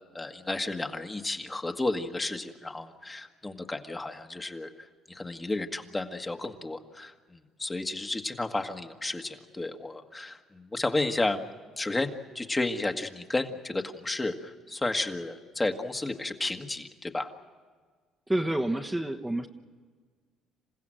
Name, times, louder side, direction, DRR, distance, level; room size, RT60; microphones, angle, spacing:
voice 1, 0.1-11.4 11.8-17.3, left 2 dB, 20° left, 5 dB, 1.6 m, -32 dB
voice 2, 18.3-19.5, right 1 dB, 10° right, 3 dB, 1.2 m, -28 dB
28.0 x 15.5 x 7.7 m, 1.6 s
supercardioid pair, 70°, 0 cm